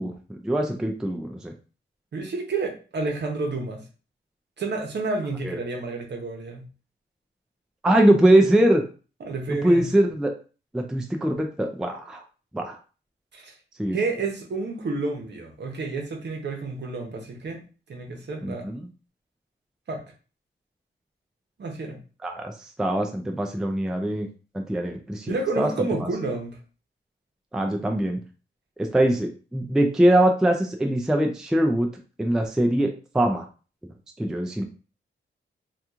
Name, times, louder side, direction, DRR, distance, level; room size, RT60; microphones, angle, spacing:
voice 1, 0.0-1.5 5.4-5.5 7.8-8.8 9.5-10.3 10.7-12.2 12.5-12.8 13.8-14.0 18.4-18.9 22.2-22.5 22.8-24.3 24.5-25.7 26.0-26.1 27.5-28.2 28.8-31.9 32.2-33.5 34.2-34.6, right 1 dB, 5° right, 3 dB, 0.3 m, -22 dB
voice 2, 2.1-3.8 4.6-6.7 9.2-9.9 13.3-13.6 13.9-17.6 17.9-18.7 19.9-20.0 21.6-22.0 25.3-26.6, right 3 dB, 60° right, 2 dB, 0.9 m, -30 dB
2.9 x 2.4 x 3.5 m, 0.36 s
wide cardioid pair, 160°, 20 cm